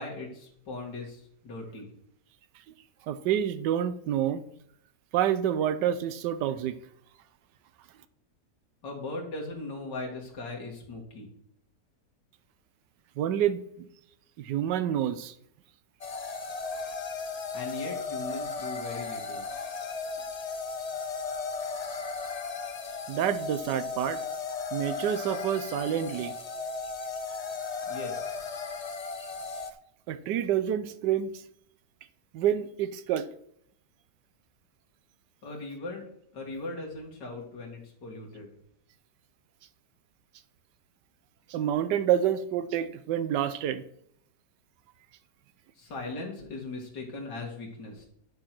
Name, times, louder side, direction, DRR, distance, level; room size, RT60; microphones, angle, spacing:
voice 1, 0.0-1.9 8.8-11.3 17.5-19.5 27.9-28.4 35.4-36.0 36.3-38.5 45.8-48.1, left 2 dB, 85° left, -1 dB, 2.7 m, -39 dB
voice 2, 3.1-4.4 5.1-6.8 13.2-13.9 14.4-15.3 23.1-24.2 24.7-26.3 30.1-31.4 32.3-33.3 41.5-43.8, right 10 dB, 85° right, 12 dB, 1.3 m, -28 dB
sound 1, 16.0-29.7, left 4 dB, 55° left, 0.4 m, -35 dB
11.5 x 4.8 x 6.0 m, 0.72 s
omnidirectional pair, 1.8 m